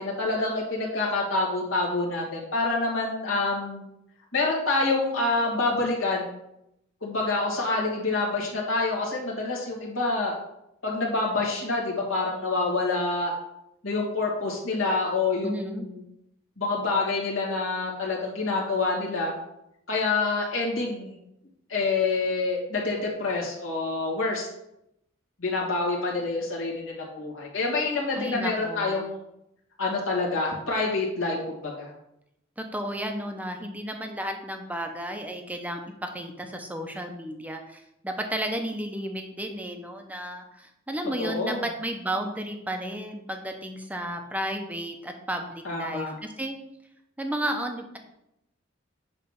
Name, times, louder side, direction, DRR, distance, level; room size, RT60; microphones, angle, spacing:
voice 1, 0.0-3.8 4.3-6.3 7.0-10.4 10.8-13.3 13.8-16.0 16.6-19.3 19.9-21.1 21.7-24.5 25.4-29.2 29.8-31.9 41.2-41.6 45.6-46.2, left 3 dB, 75° left, -3 dB, 2.2 m, -27 dB
voice 2, 15.4-15.9 28.2-28.9 32.6-46.6 47.2-48.0, right 1 dB, 10° right, 4 dB, 0.8 m, -33 dB
8.6 x 3.3 x 5.8 m, 0.83 s
head